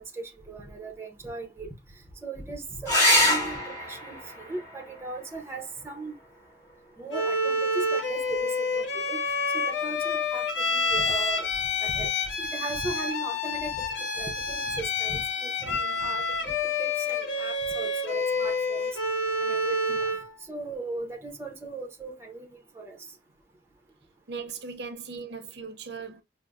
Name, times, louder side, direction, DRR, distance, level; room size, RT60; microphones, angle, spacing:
voice 1, 0.0-1.7 2.2-6.1 7.0-9.2 9.6-11.5 11.8-12.1 12.5-13.8 14.2-16.5 16.8-18.9 19.4-20.0 20.5-23.0, right 3 dB, 15° right, 0.7 m, -38 dB
sound 1, 2.8-7.9 9.8-10.4 13.9-14.0 14.3-14.4, left 1 dB, 15° left, 1.5 m, -28 dB
Bowed string instrument, 7.1-20.3, left 3 dB, 80° left, 0.9 m, -28 dB
voice 2, 24.3-26.2, right 5 dB, 65° right, 0.6 m, -38 dB
5.2 x 2.0 x 2.3 m
head